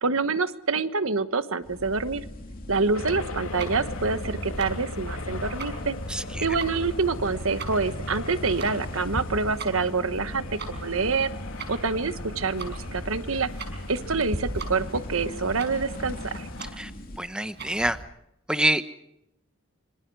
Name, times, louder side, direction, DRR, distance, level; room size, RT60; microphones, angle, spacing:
voice 1, 0.0-2.2 2.7-5.9 6.4-11.3 11.7-13.5 13.9-16.5, right 4 dB, 70° right, 1.3 m, -26 dB
sound 1, 1.6-17.2, left 1 dB, 40° left, 2.7 m, -40 dB
sound 2, 2.9-16.7, left 2 dB, 75° left, 2.5 m, -38 dB
Tick-tock, 3.4-18.0, right 2 dB, 50° right, 5.8 m, -40 dB
voice 2, 6.1-6.4 16.8-16.9 17.2-18.0 18.5-18.8, right 1 dB, 5° right, 1.1 m, -26 dB
26.5 x 26.0 x 4.8 m
head